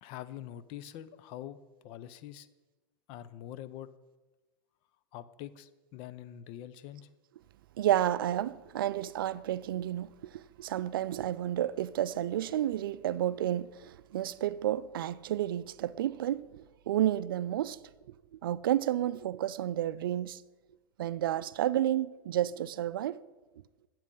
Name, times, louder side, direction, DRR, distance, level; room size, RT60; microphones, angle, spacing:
voice 1, 0.0-1.6 1.8-2.5 3.1-3.9 5.1-7.1, left 12 dB, 50° left, 0.6 m, -44 dB
voice 2, 7.8-17.8 18.4-20.4 21.0-23.2, right 12 dB, 75° right, 0.4 m, -31 dB
9.6 x 7.3 x 5.4 m
hypercardioid pair, 100°, 12 cm